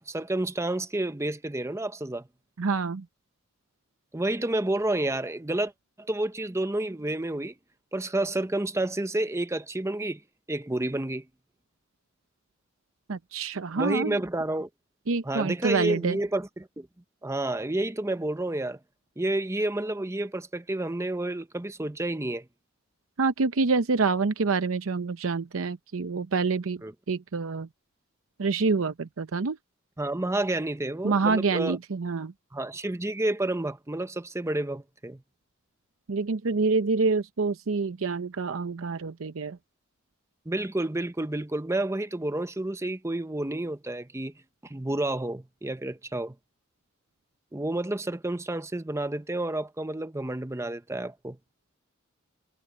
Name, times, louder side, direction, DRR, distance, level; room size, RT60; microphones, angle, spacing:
voice 1, 0.0-2.3 4.1-5.7 6.0-7.5 7.9-10.2 10.5-11.3 13.8-14.7 15.2-16.9 17.2-18.8 19.2-22.5 26.8-26.9 30.0-31.8 32.5-35.2 40.5-44.3 44.6-46.4 47.5-51.4, right 1 dB, 15° right, 0.8 m, -30 dB
voice 2, 2.6-3.1 13.1-14.2 15.1-16.2 23.2-26.8 27.1-27.7 28.4-29.6 31.0-32.3 36.1-39.6, right 4 dB, 85° right, 0.7 m, -27 dB
head